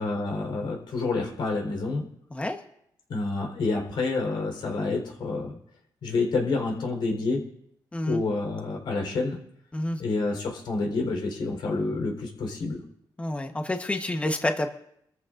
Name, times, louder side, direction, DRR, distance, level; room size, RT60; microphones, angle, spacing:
voice 1, 0.0-2.0 3.1-5.6 6.0-7.4 8.0-9.4 10.0-12.8, left 3 dB, 75° left, 1 dB, 4.1 m, -28 dB
voice 2, 13.2-14.7, left 1 dB, 15° left, 4 dB, 1.2 m, -28 dB
26.0 x 14.0 x 2.6 m, 0.74 s
cardioid pair, 115°, 8 cm